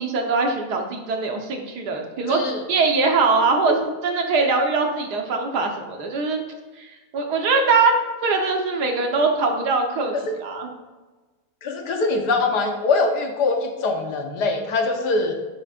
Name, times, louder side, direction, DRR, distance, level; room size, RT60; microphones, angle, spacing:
voice 1, 0.0-2.4 2.7-6.4 6.8-7.9 8.2-10.1 10.4-10.7, right 4 dB, 80° right, 3 dB, 1.7 m, -22 dB
voice 2, 2.3-2.6 3.7-3.8 10.3-10.4 11.6-15.3, left 3 dB, 90° left, 3 dB, 1.7 m, -23 dB
11.0 x 8.2 x 2.5 m, 1.2 s
omnidirectional pair, 1.7 m